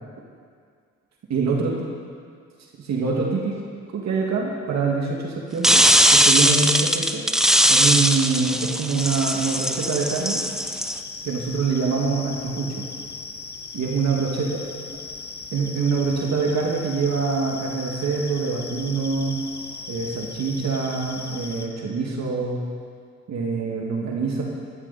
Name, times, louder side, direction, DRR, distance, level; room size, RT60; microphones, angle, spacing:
voice 1, 1.3-1.7 2.8-3.6 3.9-5.8 6.1-7.2 7.7-10.4 11.2-12.8 13.7-14.6 15.5-19.4 19.9-22.6 23.3-24.4, right 4 dB, 65° right, -1 dB, 2.4 m, -25 dB
sound 1, 5.6-11.0, equal, ahead, 0.6 m, -19 dB
sound 2, 9.0-21.7, left 4 dB, 35° left, 1.2 m, -38 dB
14.5 x 13.5 x 4.3 m, 2.1 s
cardioid pair, 90°, 30 cm